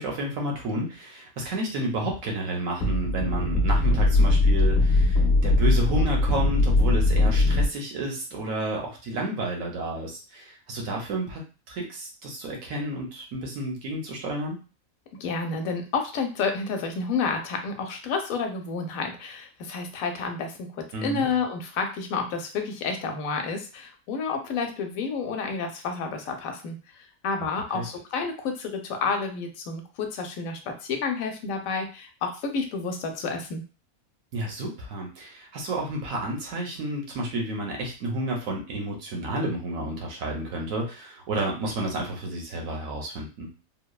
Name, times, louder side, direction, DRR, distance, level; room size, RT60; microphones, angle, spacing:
voice 1, 0.0-14.6 20.9-21.3 27.7-27.8 34.3-43.5, right 1 dB, 75° right, 0 dB, 1.2 m, -31 dB
sound 1, 2.8-7.7, left 2 dB, 50° left, 0.9 m, -20 dB
voice 2, 15.2-33.6, left 4 dB, 75° left, 4 dB, 1.0 m, -30 dB
3.0 x 2.1 x 2.3 m, 0.33 s
omnidirectional pair, 1.5 m